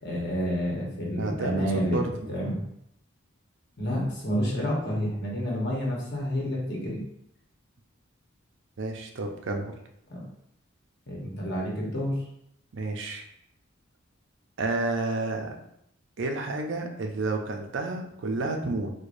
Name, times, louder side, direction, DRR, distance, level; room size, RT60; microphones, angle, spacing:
voice 1, 0.0-2.0 2.3-2.6 3.8-7.0 10.1-10.2 11.1-12.2, equal, 55° left, -3 dB, 1.1 m, -29 dB
voice 2, 1.2-2.3 8.8-9.7 12.7-13.3 14.6-15.6 16.2-18.9, right 2 dB, 60° right, 3 dB, 0.5 m, -30 dB
4.7 x 2.2 x 2.5 m, 0.74 s
head